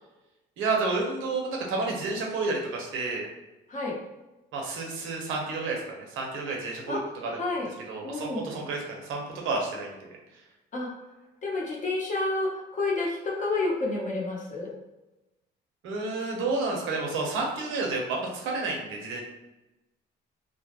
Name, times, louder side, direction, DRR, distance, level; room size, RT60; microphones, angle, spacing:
voice 1, 0.6-3.3 4.5-7.4 7.9-10.1 15.8-19.2, right 3 dB, 85° right, -1 dB, 0.7 m, -30 dB
voice 2, 7.4-7.7 8.0-8.5 10.7-10.9 11.4-14.7, left 2 dB, 40° left, -3 dB, 0.8 m, -29 dB
2.2 x 2.0 x 2.8 m, 1.0 s
cardioid pair, 80°, 20 cm